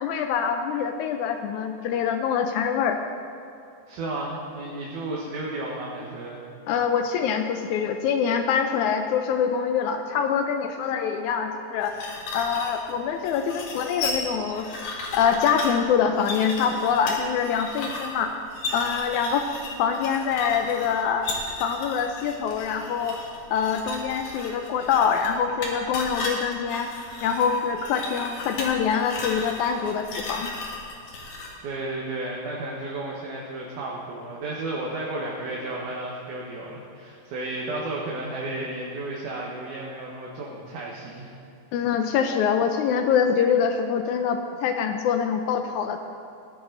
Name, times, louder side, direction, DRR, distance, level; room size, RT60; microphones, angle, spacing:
voice 1, 0.0-3.0 6.7-11.9 12.3-14.7 15.1-18.3 18.7-19.4 19.8-21.3 21.6-23.2 23.5-26.9 27.2-30.5 41.7-46.0, left 7 dB, 85° left, 6 dB, 1.7 m, -24 dB
voice 2, 3.9-6.4 31.6-41.3, right 2 dB, 65° right, -4 dB, 2.6 m, -33 dB
sound 1, 11.8-31.6, left 2 dB, 60° left, 3.1 m, -35 dB
17.0 x 11.0 x 3.9 m, 2.7 s
omnidirectional pair, 4.1 m